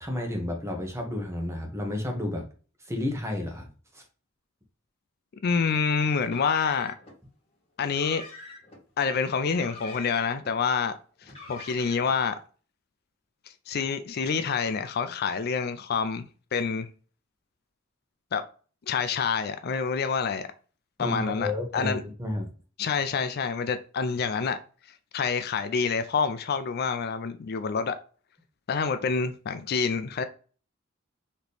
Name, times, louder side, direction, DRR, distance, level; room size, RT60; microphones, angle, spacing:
voice 1, 0.0-2.4 2.8-3.7 3.9-4.0 21.0-22.5, left 1 dB, 15° right, 1.0 m, -31 dB
voice 2, 5.4-7.0 7.8-8.2 9.0-12.4 13.7-16.2 16.5-16.9 18.3-18.4 18.9-20.5 21.0-22.0 22.8-24.6 25.1-28.0 28.7-30.2, left 5 dB, 50° left, 0.4 m, -27 dB
Car, 6.2-7.1 7.8-8.8 9.5-10.5 11.2-12.2, left 2 dB, 30° left, 1.7 m, -45 dB
4.2 x 3.0 x 3.3 m
head